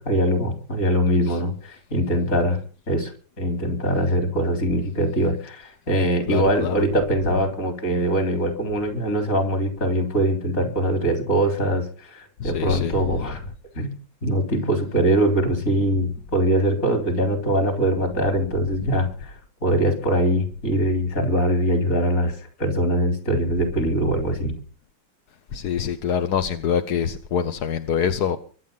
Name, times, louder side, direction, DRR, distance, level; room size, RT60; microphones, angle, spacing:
voice 1, 0.0-2.6 2.9-13.4 13.7-13.9 14.2-24.6, right 1 dB, 35° left, 3.8 m, -22 dB
voice 2, 6.3-6.8 12.4-13.2 25.5-28.4, left 8 dB, 60° left, 1.2 m, -25 dB
24.0 x 8.4 x 5.5 m
omnidirectional pair, 2.4 m